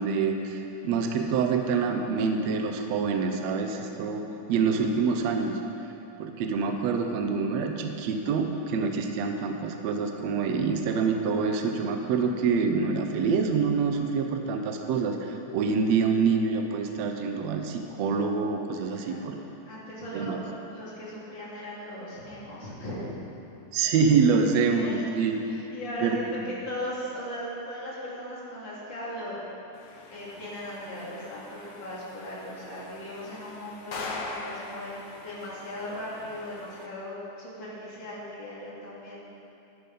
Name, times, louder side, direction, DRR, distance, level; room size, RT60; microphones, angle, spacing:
voice 1, 0.0-4.2 4.5-5.6 6.2-19.4 20.1-20.4 23.7-25.4 26.0-26.4, right 5 dB, 70° right, 4 dB, 1.7 m, -26 dB
voice 2, 19.0-19.4 19.7-20.4 20.7-23.1 24.8-26.3 26.7-29.4 30.1-35.0 35.2-39.2, left 1 dB, 35° left, -8 dB, 3.5 m, -38 dB
sound 1, 29.7-36.9, left 3 dB, 80° left, 1.0 m, -42 dB
11.5 x 11.5 x 5.5 m, 2.9 s
omnidirectional pair, 3.7 m